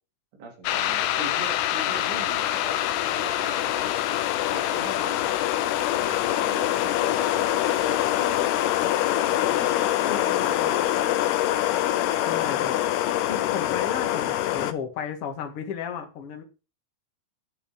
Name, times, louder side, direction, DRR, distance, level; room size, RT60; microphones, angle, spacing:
voice 1, 0.3-4.0 4.5-5.4 5.9-8.5 9.1-11.0, right 2 dB, 70° right, 0 dB, 6.2 m, -41 dB
sound 1, 0.6-14.7, left 13 dB, 80° left, 2.4 m, -24 dB
voice 2, 10.0-11.0 12.2-16.4, left 7 dB, 55° left, 4 dB, 1.6 m, -35 dB
11.5 x 6.0 x 6.1 m, 0.31 s
omnidirectional pair, 5.5 m